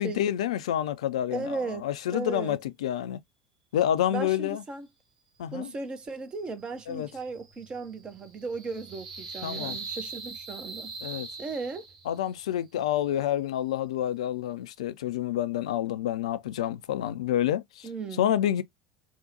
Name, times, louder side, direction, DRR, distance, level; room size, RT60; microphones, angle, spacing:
voice 1, 0.0-3.2 3.7-4.6 5.4-5.7 6.9-7.1 9.4-9.8 11.0-11.3 12.1-17.9 18.2-18.6, left 11 dB, 65° left, 0.4 m, -28 dB
voice 2, 1.3-2.6 4.1-4.9 5.5-10.9 11.4-11.8 17.8-18.3, right 4 dB, 25° right, 0.8 m, -36 dB
sound 1, 6.3-12.3, right 4 dB, 65° right, 1.0 m, -42 dB
3.6 x 2.2 x 2.6 m
figure-of-eight pair, 75°, 4 cm